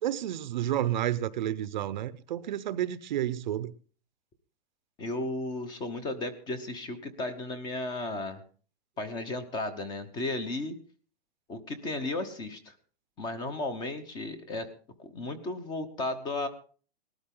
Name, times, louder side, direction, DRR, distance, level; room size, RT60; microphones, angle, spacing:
voice 1, 0.0-3.7, right 12 dB, 50° right, 0.8 m, -30 dB
voice 2, 5.0-8.4 9.0-10.7 11.5-12.7 13.2-14.7 15.0-16.5, left 2 dB, 15° left, 1.0 m, -34 dB
19.0 x 13.0 x 3.8 m
hypercardioid pair, 170°, 30 cm